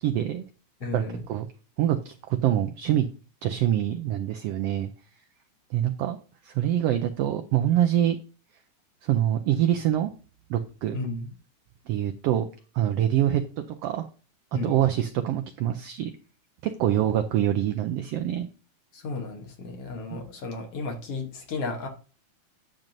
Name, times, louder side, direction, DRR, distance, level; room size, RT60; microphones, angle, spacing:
voice 1, 0.0-0.4 0.9-1.5 1.8-2.1 2.4-3.1 3.4-4.9 5.7-6.2 6.4-8.2 9.0-10.1 10.5-11.0 11.9-12.4 12.7-13.4 13.8-14.1 14.5-16.1 16.6-18.5, right 11 dB, 85° right, 8 dB, 1.4 m, -25 dB
voice 2, 0.8-1.3 10.9-11.3 14.5-14.9 18.9-21.9, left 3 dB, 60° left, 2 dB, 1.9 m, -34 dB
10.5 x 7.4 x 2.6 m, 0.37 s
omnidirectional pair, 3.4 m